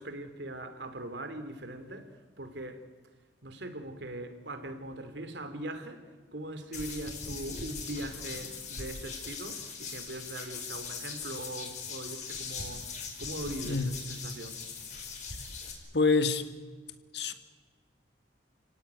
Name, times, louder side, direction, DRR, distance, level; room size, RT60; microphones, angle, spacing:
voice 1, 0.0-2.1 2.4-2.8 3.4-6.0 6.3-12.9 13.2-14.6, right 1 dB, 75° right, 9 dB, 2.8 m, -40 dB
sound 1, 6.7-15.7, left 5 dB, 40° left, 5.2 m, -40 dB
voice 2, 15.9-16.4 17.1-17.3, left 4 dB, 70° left, 9 dB, 1.8 m, -26 dB
30.0 x 17.5 x 9.5 m, 1.4 s
head